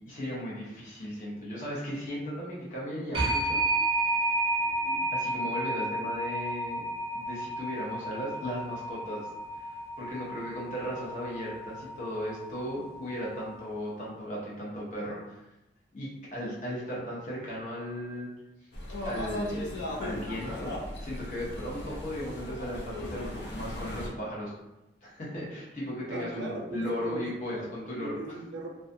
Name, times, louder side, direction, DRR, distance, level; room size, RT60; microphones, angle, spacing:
voice 1, 0.0-3.6 5.1-6.8 7.1-9.3 9.6-9.7 10.0-15.4 15.9-18.3 19.0-19.7 20.0-24.5 25.0-28.2, equal, 45° left, -6 dB, 0.8 m, -36 dB
sound 1, 3.1-13.8, right 2 dB, 30° right, 0.5 m, -32 dB
voice 2, 4.6-5.0 26.1-27.7 28.0-28.7, right 2 dB, 90° right, 1 dB, 0.5 m, -39 dB
sound 2, 18.7-24.1, left 1 dB, 75° left, 0.5 m, -37 dB
2.3 x 2.2 x 2.6 m, 0.96 s
head